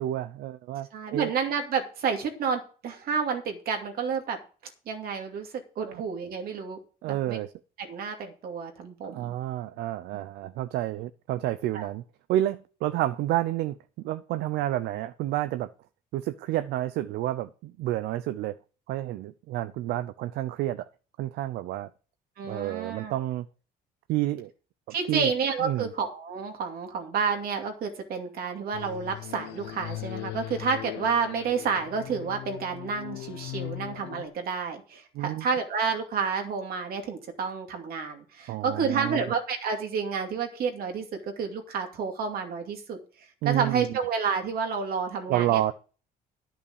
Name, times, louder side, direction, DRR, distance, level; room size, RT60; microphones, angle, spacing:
voice 1, 0.0-1.3 5.8-6.0 7.0-7.5 9.0-12.0 12.3-13.8 14.0-15.7 16.1-18.6 18.9-20.9 21.2-21.9 22.5-23.5 24.1-24.5 24.9-25.3 25.6-25.9 35.1-35.5 38.5-39.2 43.4-43.9 45.3-45.7, right 14 dB, 80° right, 0.6 m, -29 dB
voice 2, 0.9-4.4 4.9-5.5 5.8-6.8 7.1-7.4 7.8-9.3 10.1-10.2 11.7-11.9 22.4-23.2 24.9-41.0 41.4-43.0 43.4-45.7, right 5 dB, 65° right, 2.4 m, -30 dB
sound 1, 28.7-34.3, left 18 dB, 85° left, 0.7 m, -39 dB
11.0 x 5.8 x 6.4 m
cardioid pair, 110°, 17 cm